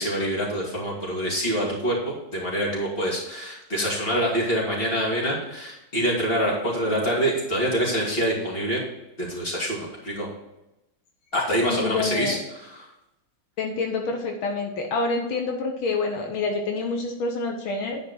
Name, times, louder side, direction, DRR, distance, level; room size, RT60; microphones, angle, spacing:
voice 1, 0.0-8.8 9.2-10.3 11.3-12.8, equal, 25° left, -3 dB, 2.9 m, -26 dB
voice 2, 11.6-12.4 13.6-18.0, left 3 dB, 80° left, 2 dB, 1.9 m, -27 dB
10.5 x 5.0 x 4.5 m, 0.92 s
omnidirectional pair, 2.2 m